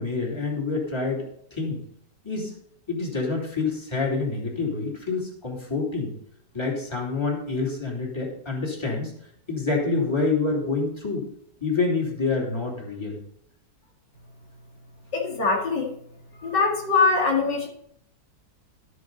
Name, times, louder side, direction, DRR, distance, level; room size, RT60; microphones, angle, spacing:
voice 1, 0.0-1.8 2.2-2.5 2.9-6.1 6.5-9.1 9.5-11.2 11.6-13.2, left 3 dB, 15° left, -1 dB, 2.9 m, -27 dB
voice 2, 15.1-15.9 16.4-17.7, left 4 dB, 75° left, -1 dB, 2.7 m, -22 dB
12.5 x 9.5 x 4.0 m, 0.71 s
omnidirectional pair, 1.9 m